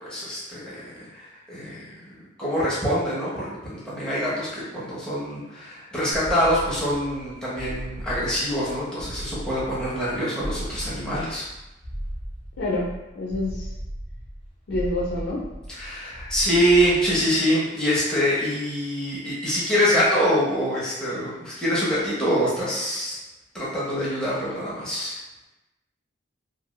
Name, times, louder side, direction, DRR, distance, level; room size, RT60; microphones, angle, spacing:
voice 1, 0.0-11.4 15.7-23.2 23.5-25.2, equal, 5° left, -9 dB, 0.7 m, -25 dB
sound 1, 6.1-17.5, equal, 35° right, 0.8 m, -37 dB
voice 2, 12.6-12.9 13.1-13.7 14.7-15.4, left 2 dB, 85° left, -4 dB, 0.5 m, -27 dB
2.6 x 2.3 x 3.0 m, 0.98 s
head